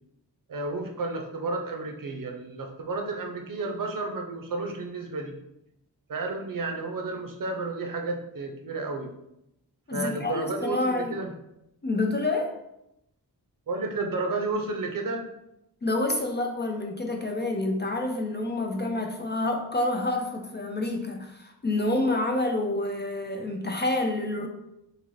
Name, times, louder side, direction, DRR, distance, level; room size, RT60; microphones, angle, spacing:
voice 1, 0.5-5.4 6.1-9.1 9.9-11.3 13.7-15.3, right 3 dB, 55° right, 3 dB, 0.6 m, -32 dB
voice 2, 9.9-11.2 11.8-12.5 15.8-24.5, left 2 dB, 25° left, 2 dB, 0.4 m, -28 dB
2.7 x 2.6 x 3.0 m, 0.83 s
cardioid pair, 50°, 41 cm